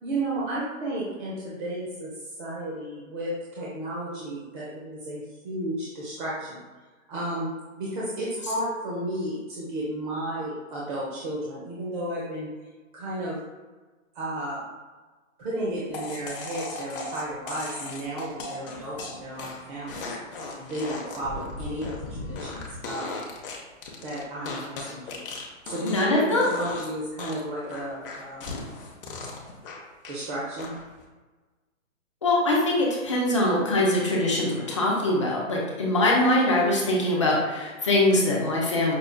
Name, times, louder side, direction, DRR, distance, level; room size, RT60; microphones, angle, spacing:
voice 1, 0.0-2.1 2.4-6.6 7.1-7.5 7.8-12.5 12.9-13.4 14.1-14.6 15.4-20.1 20.6-21.9 22.2-23.2 24.0-25.2 25.6-28.6 30.1-30.7, right 1 dB, 40° right, -6 dB, 0.7 m, -33 dB
sound 1, 15.9-26.2 26.4-26.9 27.2-30.2 30.6-31.0, left 3 dB, 40° left, 0.7 m, -37 dB
voice 2, 25.8-26.5 32.2-39.0, left 1 dB, 25° left, -3 dB, 0.4 m, -23 dB
5.5 x 2.3 x 2.2 m, 1.3 s
hypercardioid pair, 140°, 41 cm